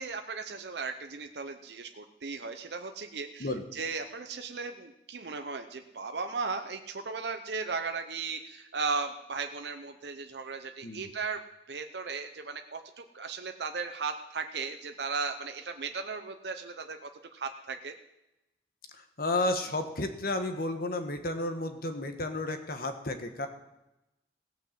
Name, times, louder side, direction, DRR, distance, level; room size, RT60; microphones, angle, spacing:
voice 1, 0.0-11.4 11.7-17.9, right 4 dB, 70° right, 6 dB, 0.7 m, -36 dB
voice 2, 19.2-23.5, left 2 dB, 55° left, 7 dB, 1.4 m, -32 dB
17.5 x 5.8 x 7.5 m, 0.93 s
head